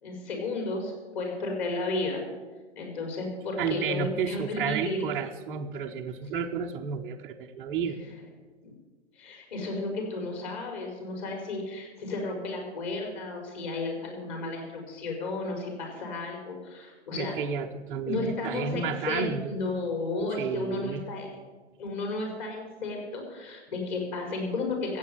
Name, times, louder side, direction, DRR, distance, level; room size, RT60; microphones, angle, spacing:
voice 1, 0.0-2.2 2.8-5.1 8.0-8.1 8.6-8.7 9.2-17.3 18.1-21.3 21.8-25.0, left 2 dB, 40° left, 2 dB, 5.2 m, -33 dB
voice 2, 3.6-8.0 17.1-19.6 20.4-21.0, right 6 dB, 10° right, -4 dB, 0.4 m, -31 dB
15.0 x 8.5 x 8.7 m, 1.3 s
figure-of-eight pair, 125°, 34 cm